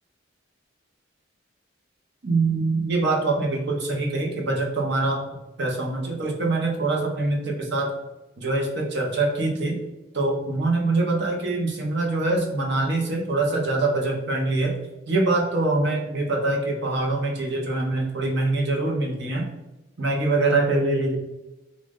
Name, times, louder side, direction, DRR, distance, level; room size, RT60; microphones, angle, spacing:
voice 1, 2.2-5.2 5.6-7.9 8.4-9.8 10.1-14.7 15.1-19.5 20.0-21.2, right 2 dB, 60° right, -1 dB, 0.9 m, -24 dB
3.1 x 2.5 x 3.6 m, 1.0 s
head